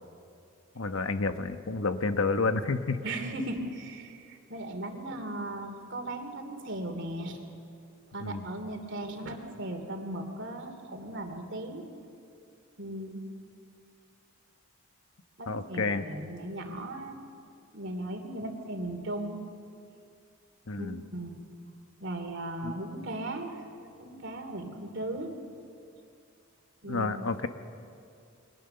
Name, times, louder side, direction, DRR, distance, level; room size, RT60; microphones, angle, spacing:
voice 1, 0.7-3.0 8.2-8.5 15.5-16.1 20.7-21.0 22.6-22.7 26.9-27.5, left 3 dB, 75° left, 8 dB, 1.1 m, -30 dB
voice 2, 3.0-7.4 8.1-11.9 12.8-13.2 15.4-17.2 17.7-19.4 20.8-21.4 22.0-23.6 24.0-25.3 26.8-27.1, right 1 dB, 60° right, 5 dB, 2.8 m, -37 dB
29.5 x 22.5 x 6.9 m, 2.5 s
head